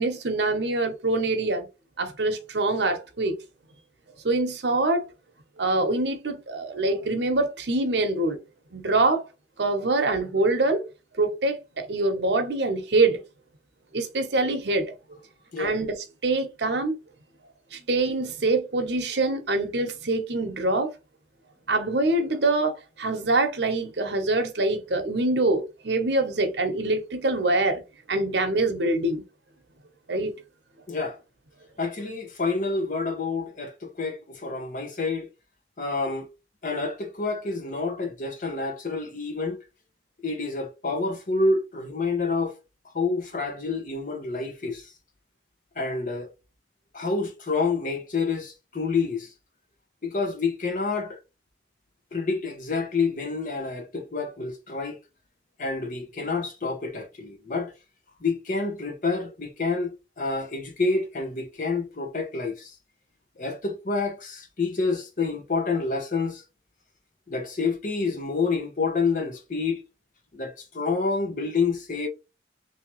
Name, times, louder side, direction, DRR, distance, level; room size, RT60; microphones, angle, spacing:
voice 1, 0.0-1.7 2.0-3.4 4.2-5.0 5.6-8.4 8.7-9.2 9.6-10.9 11.2-13.2 13.9-15.2 15.6-15.9 16.2-16.9 17.7-20.9 21.7-27.8 28.1-29.2 30.1-30.4, right 2 dB, 70° right, 0.8 m, -24 dB
voice 2, 30.9-31.2 31.8-35.3 35.8-36.3 36.6-39.6 40.2-42.5 42.9-44.9 45.8-46.3 46.9-49.3 50.0-51.2 52.1-55.0 55.6-57.7 58.2-62.7 63.4-66.4 67.3-69.8 70.3-72.1, left 4 dB, 45° left, 0.9 m, -28 dB
3.3 x 2.8 x 3.0 m
head